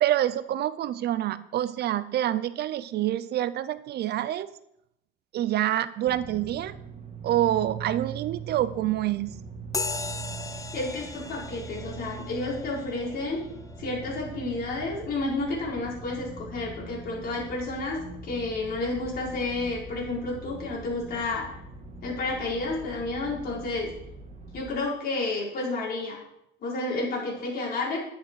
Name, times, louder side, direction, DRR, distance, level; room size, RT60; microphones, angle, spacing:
voice 1, 0.0-4.5 5.3-6.8 7.2-9.4, right 12 dB, 50° right, 15 dB, 0.6 m, -27 dB
sound 1, 6.0-24.8, right 4 dB, 30° right, 1.7 m, -42 dB
sound 2, 9.7-17.6, left 4 dB, 15° left, 0.7 m, -39 dB
voice 2, 10.7-13.4 13.8-21.5 22.0-23.9 24.5-26.2 26.6-28.0, left 2 dB, 45° left, -4 dB, 5.2 m, -31 dB
11.5 x 9.9 x 4.9 m, 0.78 s
cardioid pair, 125°, 21 cm